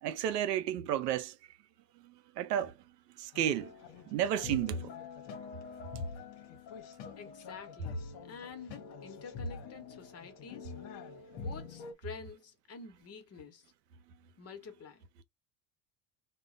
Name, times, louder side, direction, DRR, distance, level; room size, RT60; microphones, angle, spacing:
voice 1, 0.0-1.3 2.4-2.7 3.2-3.7 4.1-4.9, right 10 dB, 85° right, 0.6 m, -32 dB
sound 1, 3.3-11.9, left 3 dB, 60° left, 0.8 m, -44 dB
voice 2, 7.2-8.0 8.3-10.7 11.3-13.7 14.4-15.1, left 5 dB, 30° left, 0.9 m, -48 dB
2.1 x 2.1 x 3.7 m
hypercardioid pair, 85°, 47 cm